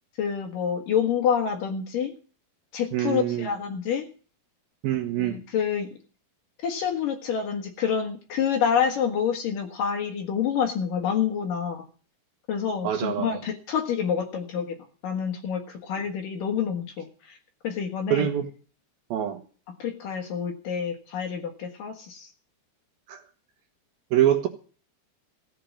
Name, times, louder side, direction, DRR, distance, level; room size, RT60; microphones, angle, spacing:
voice 1, 0.2-2.1 2.7-4.1 5.2-5.9 6.6-11.8 12.5-14.8 15.0-17.4 17.6-18.3 19.8-22.3, left 7 dB, 60° left, 5 dB, 2.7 m, -27 dB
voice 2, 2.9-3.5 4.8-5.4 12.8-13.4 18.1-18.5 19.1-19.4 23.1-23.2 24.1-24.5, right 11 dB, 65° right, 7 dB, 2.8 m, -24 dB
16.0 x 8.5 x 7.1 m, 0.39 s
omnidirectional pair, 5.1 m